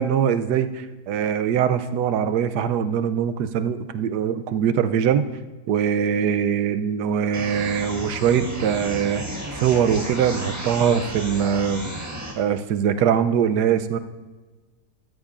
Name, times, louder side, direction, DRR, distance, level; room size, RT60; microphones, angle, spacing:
voice 1, 0.0-5.3 5.7-9.3 9.5-12.1 12.4-14.0, right 8 dB, 80° right, 10 dB, 1.2 m, -22 dB
sound 1, 7.3-12.3, equal, 10° right, 1.3 m, -33 dB
14.0 x 13.0 x 2.5 m, 1.3 s
omnidirectional pair, 1.7 m